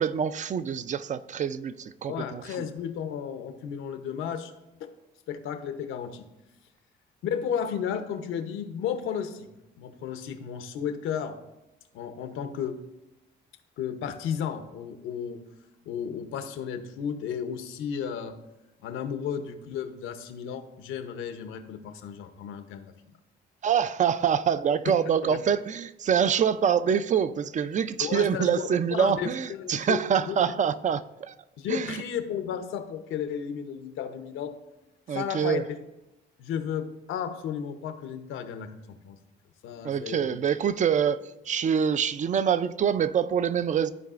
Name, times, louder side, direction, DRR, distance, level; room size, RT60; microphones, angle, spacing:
voice 1, 0.0-2.7 23.6-31.3 31.7-32.0 35.1-35.6 39.8-41.2 41.5-43.9, right 8 dB, 40° right, 0.4 m, -25 dB
voice 2, 2.1-4.5 4.8-4.9 5.3-6.3 7.2-9.5 9.8-11.4 11.9-12.8 13.8-15.4 15.9-18.3 18.8-22.9 25.2-25.4 28.0-30.4 31.6-34.5 35.1-35.6 36.4-39.2 39.6-40.4, left 8 dB, 90° left, 0.8 m, -33 dB
13.5 x 4.7 x 2.5 m
cardioid pair, 90°, 20 cm